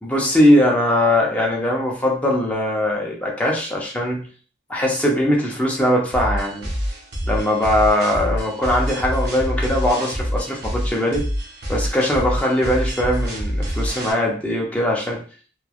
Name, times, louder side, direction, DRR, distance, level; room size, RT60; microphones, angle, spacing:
voice 1, 0.0-4.2 4.7-6.7 7.3-11.3 11.7-15.2, left 1 dB, 10° left, -2 dB, 0.6 m, -20 dB
sound 1, 6.1-14.1, equal, 60° right, 0.7 m, -26 dB
3.1 x 2.2 x 2.3 m, 0.41 s
head